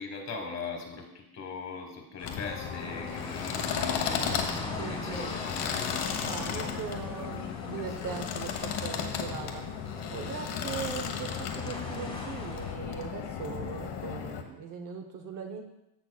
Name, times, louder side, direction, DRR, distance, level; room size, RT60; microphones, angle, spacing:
voice 1, 0.0-4.4 4.9-7.3 8.0-8.2, left 4 dB, 35° left, 3 dB, 1.4 m, -40 dB
sound 1, 2.2-14.4, left 7 dB, 55° left, 1.1 m, -35 dB
sound 2, 2.2-12.7, left 2 dB, 10° left, 1.4 m, -42 dB
voice 2, 4.8-5.4 6.2-15.6, right 6 dB, 40° right, 4 dB, 0.8 m, -40 dB
14.5 x 5.9 x 2.3 m, 0.90 s
cardioid pair, 140°, 49 cm